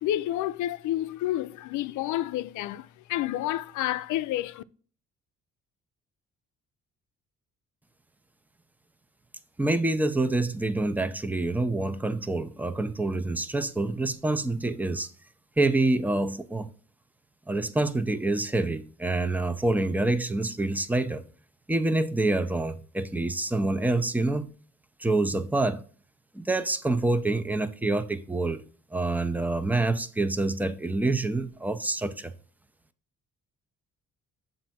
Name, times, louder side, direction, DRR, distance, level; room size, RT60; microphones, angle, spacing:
voice 1, 0.0-4.6, left 13 dB, 80° left, 0.5 m, -29 dB
voice 2, 9.6-15.1 15.6-16.7 17.5-21.2 21.7-24.5 25.0-25.8 26.3-28.6 28.9-32.3, right 2 dB, 5° right, 0.5 m, -27 dB
7.1 x 2.6 x 5.7 m
cardioid pair, 90°, 30 cm